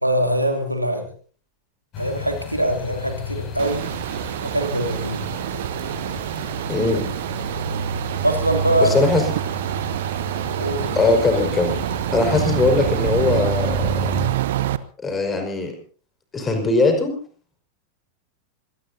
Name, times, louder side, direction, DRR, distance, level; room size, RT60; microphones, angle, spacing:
voice 1, 0.0-1.1 2.0-3.8 4.4-5.2 8.2-8.9 10.6-11.0, right 1 dB, 85° right, 4 dB, 2.9 m, -22 dB
sound 1, 1.9-14.3, right 1 dB, 35° left, 6.8 m, -31 dB
sound 2, 3.6-14.8, right 13 dB, 55° right, 0.9 m, -27 dB
voice 2, 6.7-7.0 8.8-9.2 10.9-11.8 12.1-14.1 15.0-15.7 16.3-17.1, left 3 dB, 15° left, 5 dB, 5.2 m, -20 dB
26.5 x 19.0 x 2.8 m, 0.42 s
figure-of-eight pair, 90°, 0 cm